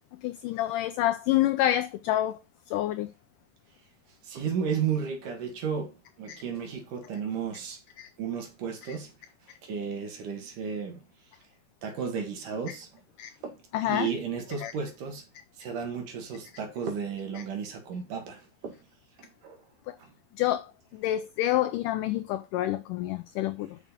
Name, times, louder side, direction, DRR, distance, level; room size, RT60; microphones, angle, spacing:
voice 1, 0.2-2.4 2.7-3.1 6.3-6.4 8.0-8.1 8.9-9.0 12.7-12.8 13.2-13.3 13.7-14.1 14.6-14.7 19.9-20.0 20.4-23.8, left 13 dB, 85° left, 1.8 m, -28 dB
voice 2, 4.2-7.8 8.2-9.1 9.6-11.0 11.8-12.9 13.4-15.2 15.6-18.8 19.2-19.6 20.0-20.1, right 6 dB, 60° right, 3.3 m, -33 dB
7.3 x 6.2 x 5.3 m
omnidirectional pair, 4.3 m